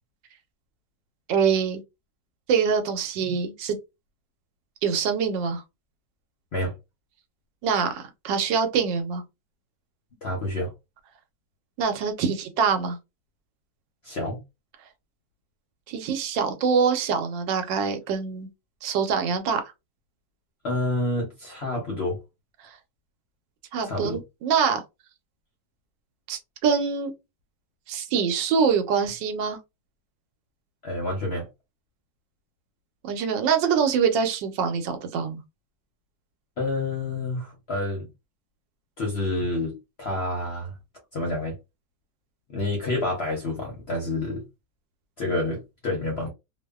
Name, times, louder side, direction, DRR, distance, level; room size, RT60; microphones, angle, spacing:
voice 1, 1.3-1.8 2.5-3.8 4.8-5.6 7.6-9.2 11.8-13.0 15.9-18.5 18.8-19.6 23.7-24.8 26.3-27.1 27.9-29.6 33.0-35.4, right 6 dB, 85° right, 1.3 m, -24 dB
voice 2, 10.2-10.7 14.0-14.4 20.6-22.2 23.8-24.2 30.8-31.5 36.6-38.1 39.0-40.8 41.1-41.6 42.5-44.4 45.2-46.3, left 2 dB, 55° left, 0.7 m, -28 dB
3.0 x 2.0 x 2.2 m
omnidirectional pair, 1.9 m